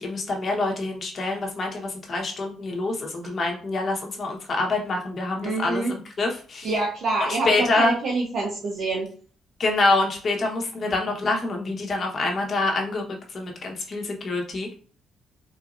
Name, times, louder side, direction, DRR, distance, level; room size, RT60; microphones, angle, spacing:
voice 1, 0.0-6.7 7.3-7.9 9.6-13.0 13.3-14.7, left 2 dB, 45° left, 1 dB, 1.0 m, -26 dB
voice 2, 5.4-5.9 6.6-9.1, right 2 dB, 60° right, -4 dB, 0.9 m, -26 dB
3.9 x 2.7 x 2.5 m, 0.42 s
cardioid pair, 90°, 0 cm